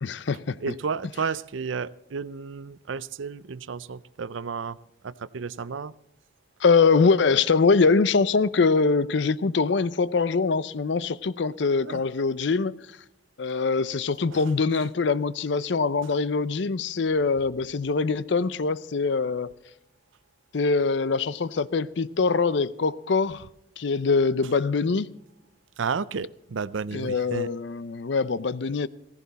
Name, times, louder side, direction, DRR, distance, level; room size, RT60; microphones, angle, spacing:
voice 1, 0.0-0.6 6.6-12.7 13.4-19.5 20.5-23.4 23.8-25.1 26.9-28.9, left 4 dB, 65° left, 0.5 m, -23 dB
voice 2, 0.6-4.8 5.0-5.9 11.8-12.0 14.3-14.4 14.7-14.8 25.8-27.5, right 5 dB, 75° right, 0.5 m, -32 dB
16.5 x 15.5 x 4.1 m
head